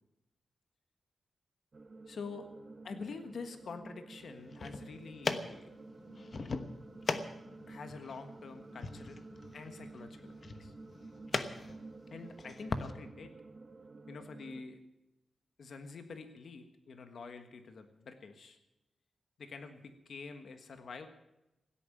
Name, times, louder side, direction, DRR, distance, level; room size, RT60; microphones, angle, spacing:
sound 1, 1.7-14.6, right 3 dB, 40° right, 1.1 m, -51 dB
voice 1, 2.1-2.5 2.8-5.7 7.7-9.2 9.5-10.3 10.6-10.7 12.1-13.3 14.1-14.8 15.6-18.6 19.4-21.1, left 4 dB, 70° left, 7 dB, 1.5 m, -46 dB
sound 2, 4.4-12.9, left 4 dB, 50° left, 1.1 m, -40 dB
16.0 x 8.8 x 9.0 m, 0.93 s
cardioid pair, 80°, 0 cm